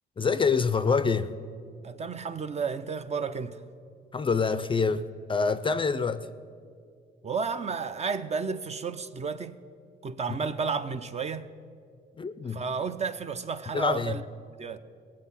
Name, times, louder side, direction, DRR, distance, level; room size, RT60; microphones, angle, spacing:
voice 1, 0.2-1.3 4.1-5.0 5.3-6.3 12.2-12.6 13.7-14.2, left 5 dB, 25° left, 0.4 m, -26 dB
voice 2, 1.8-3.6 7.2-9.6 10.0-11.5 12.5-14.2 14.6-14.8, right 5 dB, 35° right, 0.5 m, -32 dB
17.5 x 7.4 x 5.6 m
cardioid pair, 90°, 20 cm